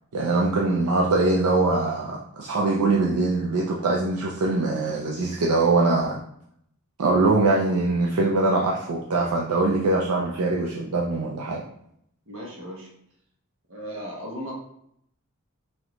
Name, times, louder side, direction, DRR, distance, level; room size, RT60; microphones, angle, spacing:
voice 1, 0.1-6.2 7.0-11.6, right 2 dB, 80° right, -2 dB, 0.5 m, -22 dB
voice 2, 12.3-12.9 13.7-14.5, equal, 60° right, -2 dB, 1.2 m, -36 dB
4.9 x 2.8 x 3.0 m, 0.72 s
head